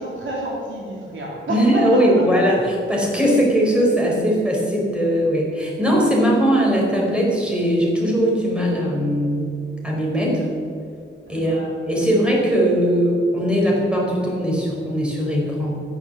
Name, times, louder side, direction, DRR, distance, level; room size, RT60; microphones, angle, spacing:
voice 1, 0.0-2.3 11.3-11.7, right 1 dB, 70° right, -2 dB, 3.4 m, -29 dB
voice 2, 1.5-9.5 9.8-10.5 11.3-15.8, equal, 5° right, -3 dB, 4.7 m, -20 dB
14.5 x 10.5 x 7.6 m, 2.4 s
wide cardioid pair, 120°, 21 cm